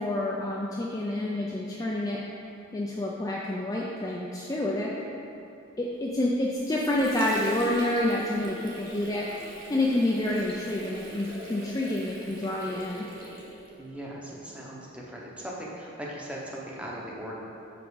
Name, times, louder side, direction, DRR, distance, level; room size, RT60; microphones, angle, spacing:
voice 1, 0.0-2.2 2.7-5.0 5.8-9.3 9.7-13.1, left 1 dB, 20° left, -4 dB, 0.4 m, -28 dB
Water / Sink (filling or washing), 6.2-13.9, right 1 dB, 45° right, 1.3 m, -43 dB
voice 2, 13.8-17.4, equal, 5° right, -4 dB, 0.8 m, -39 dB
5.9 x 5.2 x 4.7 m, 2.7 s
head